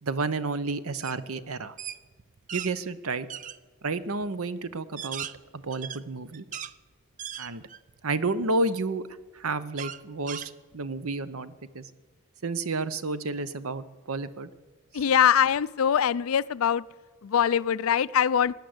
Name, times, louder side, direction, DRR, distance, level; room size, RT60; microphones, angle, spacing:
voice 1, 0.0-1.7 2.5-3.3 3.8-5.3 5.5-6.4 7.4-7.6 8.0-9.1 9.3-11.8 12.4-14.5, right 3 dB, 70° right, 15 dB, 0.8 m, -31 dB
sound 1, 1.0-1.2 1.5-2.7 3.3-3.6 4.2-4.3 4.8-6.7 7.2-7.9 8.4-8.5 9.8-11.0, right 9 dB, 35° right, 0.5 m, -38 dB
voice 2, 14.9-16.8 17.2-18.5, left 8 dB, 65° left, 19 dB, 0.4 m, -23 dB
17.0 x 9.9 x 7.9 m, 1.4 s
head